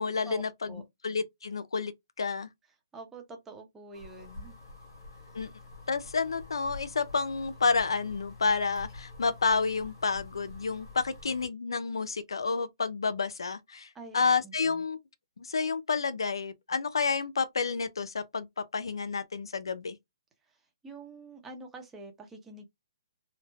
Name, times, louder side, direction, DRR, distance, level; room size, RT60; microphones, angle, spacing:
voice 1, 0.0-1.9 2.2-2.5 5.3-5.5 5.9-15.0 15.4-18.5 18.7-20.0, left 4 dB, 90° left, 0.5 m, -30 dB
voice 2, 2.9-4.5 13.9-14.8 20.8-22.7, right 3 dB, 10° right, 0.7 m, -46 dB
sound 1, 3.9-11.5, left 3 dB, 55° left, 1.2 m, -47 dB
3.2 x 2.0 x 2.2 m
hypercardioid pair, 150°, 2 cm